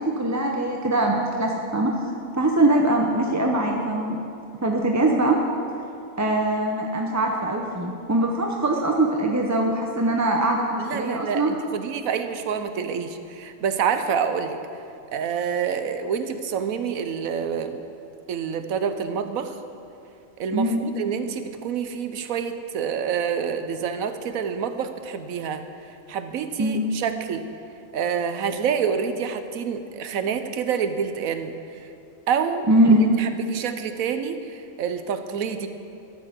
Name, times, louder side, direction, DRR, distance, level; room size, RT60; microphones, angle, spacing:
voice 1, 0.2-1.9 2.4-4.2 4.6-5.4 6.2-11.5 20.5-20.8 26.6-26.8 32.7-33.0, right 1 dB, 20° right, 0 dB, 0.5 m, -22 dB
voice 2, 10.8-14.6 15.1-17.8 18.3-19.6 20.4-27.5 27.9-31.8 32.3-32.7 33.2-35.7, right 7 dB, 75° right, 9 dB, 1.2 m, -27 dB
13.0 x 6.5 x 7.9 m, 2.6 s
omnidirectional pair, 1.5 m